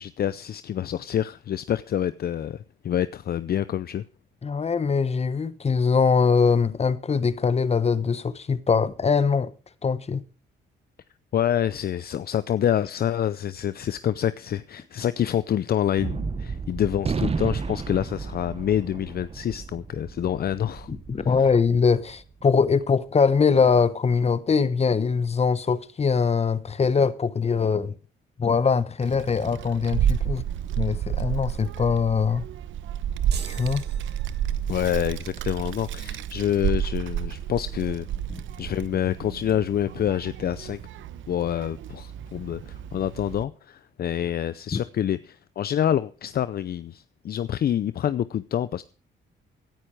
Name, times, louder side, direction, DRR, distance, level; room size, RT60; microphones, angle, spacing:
voice 1, 0.0-4.0 11.3-20.9 21.2-21.5 34.7-38.1 38.6-40.8 41.3-48.8, left 10 dB, 50° left, 0.6 m, -27 dB
voice 2, 4.4-9.5 9.8-10.2 20.9-27.9 28.4-30.4 30.8-32.4 33.5-33.8 44.7-44.8, left 5 dB, 30° left, 1.1 m, -22 dB
Gunshot gunfire, 16.0-22.5, right 5 dB, 30° right, 1.0 m, -33 dB
Child speech kid speaking, 29.0-43.4, right 9 dB, 75° right, 0.9 m, -31 dB
sound 1, 33.3-34.9, right 7 dB, 55° right, 2.1 m, -43 dB
17.0 x 9.9 x 4.8 m
cardioid pair, 90°, 20 cm